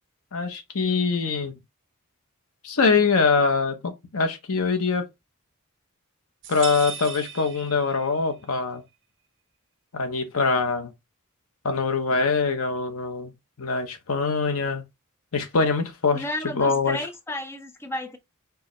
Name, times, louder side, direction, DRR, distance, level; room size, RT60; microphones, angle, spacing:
voice 1, 0.3-1.6 2.6-5.1 6.5-8.8 9.9-10.9 11.6-13.3 13.6-14.8 15.3-17.0, left 4 dB, 80° left, 0.8 m, -23 dB
sound 1, 6.4-8.4, right 7 dB, 60° right, 0.8 m, -37 dB
voice 2, 16.1-18.2, left 1 dB, 10° left, 0.4 m, -32 dB
4.6 x 2.2 x 3.0 m
head